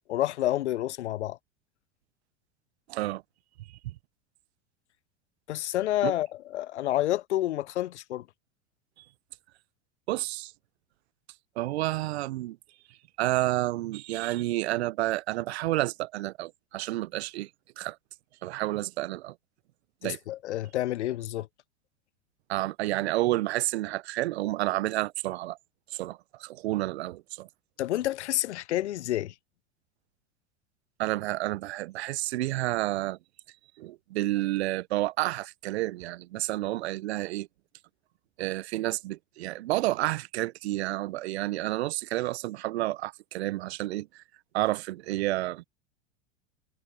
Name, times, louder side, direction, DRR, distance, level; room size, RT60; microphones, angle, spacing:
voice 1, 0.1-1.4 5.5-8.2 20.0-21.5 27.8-29.3, left 14 dB, 85° left, 0.5 m, -29 dB
voice 2, 2.9-3.2 6.0-6.1 10.1-10.5 11.6-12.6 13.2-17.5 17.8-18.0 18.4-19.3 20.0-20.2 22.5-25.6 25.9-27.5 31.0-33.2 33.8-37.5 38.4-44.1 44.5-45.6, right 17 dB, 70° right, 0.8 m, -30 dB
hypercardioid pair, 90°, 33 cm